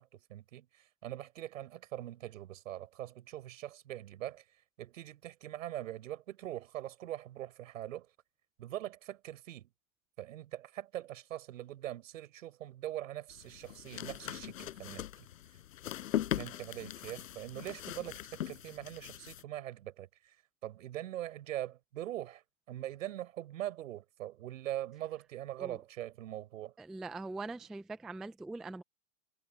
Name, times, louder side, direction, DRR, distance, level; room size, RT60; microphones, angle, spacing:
voice 1, 0.0-4.4 4.8-8.1 8.6-9.7 10.2-15.0 16.4-20.3 20.6-22.4 22.7-26.7, right 13 dB, 75° right, 6.9 m, -42 dB
sound 1, 13.3-19.4, left 12 dB, 75° left, 6.1 m, -40 dB
voice 2, 26.8-28.8, right 3 dB, ahead, 0.3 m, -42 dB
hypercardioid pair, 140°, 40 cm